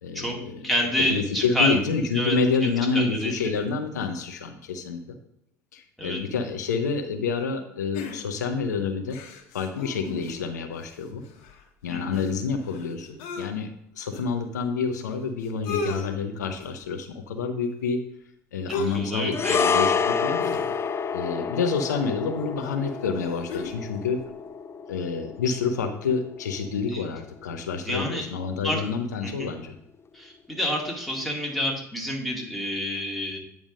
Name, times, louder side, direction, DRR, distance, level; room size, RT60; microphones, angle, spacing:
voice 1, 0.0-0.7 1.1-5.0 5.7-9.2 9.5-11.2 11.8-18.0 18.5-20.6 21.1-24.2 24.9-29.8, left 5 dB, 85° left, 6 dB, 0.7 m, -28 dB
voice 2, 0.6-1.8 2.1-3.3 6.0-6.2 11.9-12.2 18.7-19.6 26.9-27.0 27.8-28.3 28.6-28.8 29.2-29.5 30.1-33.4, equal, ahead, -1 dB, 2.3 m, -28 dB
sound 1, 7.9-8.6 9.1-10.5 10.9-11.0 11.2-13.5 14.1-14.2 15.1-15.2 15.4-16.1 16.6-16.9 18.7-19.1 19.4-19.6 20.4-21.1 22.1-22.2 22.8-23.8 24.2-24.3, left 3 dB, 70° left, 1.3 m, -35 dB
sound 2, 19.3-27.8 28.1-28.3, left 6 dB, 30° left, 0.5 m, -29 dB
8.9 x 3.6 x 5.1 m, 0.73 s
hypercardioid pair, 70°, 9 cm